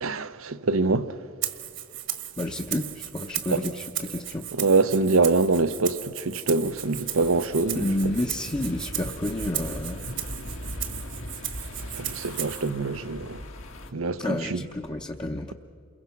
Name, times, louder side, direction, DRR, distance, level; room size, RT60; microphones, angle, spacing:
voice 1, 0.0-1.1 4.6-7.8 12.0-13.4 13.9-14.6, right 3 dB, 80° right, 0.8 m, -24 dB
Rattle (instrument), 1.4-12.7, right 12 dB, 60° right, 1.5 m, -36 dB
voice 2, 2.4-4.5 7.7-10.1 14.2-15.5, left 1 dB, 20° left, 0.8 m, -30 dB
sound 1, 6.6-13.9, left 1 dB, 75° left, 1.9 m, -39 dB
28.5 x 22.5 x 5.9 m
head